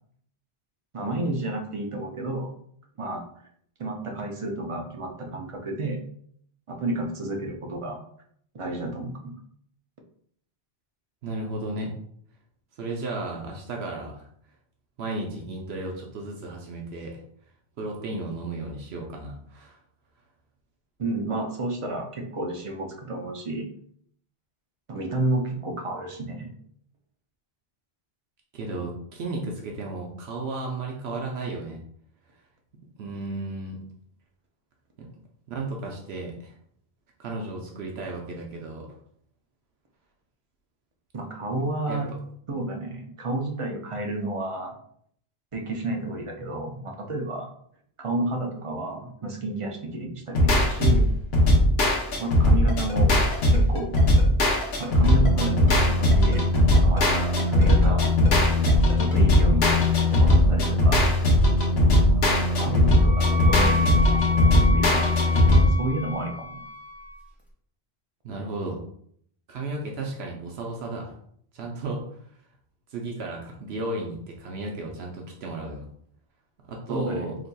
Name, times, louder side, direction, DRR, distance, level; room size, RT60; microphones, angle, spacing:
voice 1, 0.9-2.5 3.0-3.2 3.8-6.0 6.7-8.0 8.5-9.3 21.0-23.7 24.9-26.5 41.1-42.1 42.5-44.7 45.5-47.5 48.0-51.1 52.2-53.2 53.5-53.9 54.8-58.0 58.9-61.1 62.5-65.3 65.6-66.6 76.9-77.3, right 2 dB, 45° right, 2 dB, 0.4 m, -31 dB
voice 2, 11.2-12.0 12.8-14.3 15.0-17.2 17.8-19.8 28.5-31.8 33.0-33.8 35.0-35.1 35.5-36.5 37.2-38.9 41.9-42.0 68.2-68.8 69.5-71.1 71.5-72.0 72.9-75.9 76.7-77.4, right 2 dB, 75° right, 0 dB, 0.9 m, -34 dB
sound 1, 50.3-65.7, left 1 dB, 75° left, 1.0 m, -19 dB
Ringtone, 52.7-59.4, equal, 45° left, 0.8 m, -37 dB
Wind instrument woodwind instrument, 62.4-67.2, right 1 dB, ahead, 0.8 m, -32 dB
4.1 x 2.9 x 2.2 m, 0.65 s
omnidirectional pair, 1.1 m